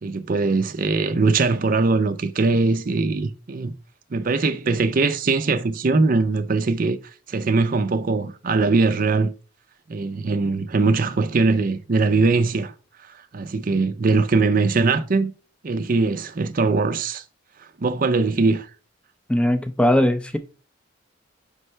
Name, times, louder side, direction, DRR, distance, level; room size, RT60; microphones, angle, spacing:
voice 1, 0.0-3.8 4.1-7.0 7.3-9.3 9.9-12.7 13.3-15.3 15.6-17.2 17.8-18.7, right 3 dB, 45° right, 0.5 m, -21 dB
voice 2, 19.3-20.4, left 1 dB, 5° left, 0.5 m, -19 dB
5.3 x 3.2 x 5.5 m
head